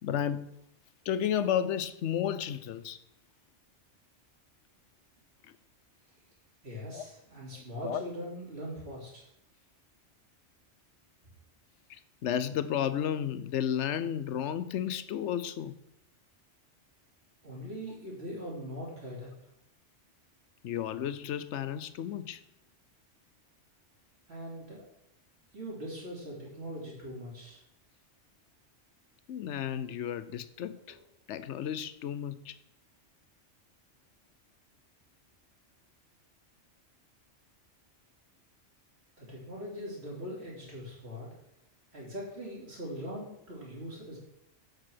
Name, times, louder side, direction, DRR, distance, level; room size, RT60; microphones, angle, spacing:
voice 1, 0.0-0.6 1.0-3.0 5.4-5.5 6.9-7.1 7.5-8.0 11.9-15.8 20.6-22.4 29.3-31.0 31.3-32.6, left 9 dB, 75° left, 14 dB, 1.0 m, -33 dB
voice 2, 6.6-9.2 17.4-19.3 24.3-24.8 25.5-27.6 39.2-41.3 41.9-44.2, equal, 60° right, -5 dB, 3.5 m, -41 dB
7.5 x 6.3 x 6.3 m, 0.79 s
omnidirectional pair, 1.2 m